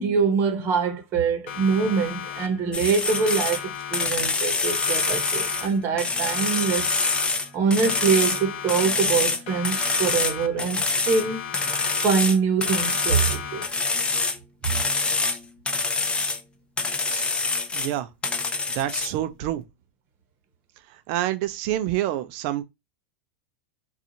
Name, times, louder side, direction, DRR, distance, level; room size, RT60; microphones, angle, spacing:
voice 1, 0.0-6.9 7.5-11.5 12.0-13.7, right 5 dB, 40° right, 0.9 m, -24 dB
Siren, 1.5-2.8 3.1-4.4 4.7-6.0 6.3-7.6 7.9-9.2 9.5-10.8 11.1-12.4 12.7-14.0, left 8 dB, 75° left, 0.4 m, -36 dB
sound 1, 2.7-3.6 3.9-5.7 6.0-8.4 8.7-10.3 10.6-11.2 11.5-14.4 14.6-15.4 15.7-16.4 16.8-17.9 18.2-19.1, left 3 dB, 15° left, 0.5 m, -25 dB
voice 2, 17.7-18.1 18.7-19.6 20.9-22.6, right 13 dB, 55° right, 0.5 m, -27 dB
2.6 x 2.4 x 2.8 m
hypercardioid pair, 115°, 6 cm